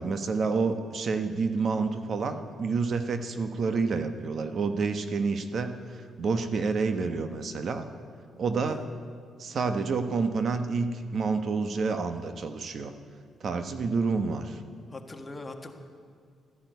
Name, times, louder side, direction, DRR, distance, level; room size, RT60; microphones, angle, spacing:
voice 1, 0.0-7.9 8.4-8.8 9.4-12.9 13.4-14.6, right 4 dB, 55° right, 8 dB, 1.1 m, -29 dB
voice 2, 8.6-8.9 14.9-15.7, left 2 dB, 20° left, 5 dB, 1.6 m, -42 dB
14.0 x 10.5 x 9.3 m, 2.3 s
cardioid pair, 90°, 0 cm